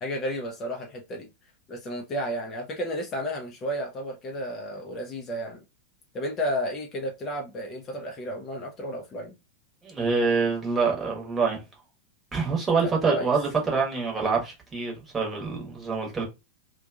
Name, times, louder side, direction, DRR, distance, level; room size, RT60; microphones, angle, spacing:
voice 1, 0.0-1.3 1.7-5.6 6.1-9.4 12.8-13.3, equal, 30° left, 0.5 m, -32 dB
voice 2, 9.8-11.6 12.3-16.2, right 4 dB, 15° right, 1.0 m, -26 dB
2.6 x 2.2 x 2.3 m
figure-of-eight pair, 90°, 0 cm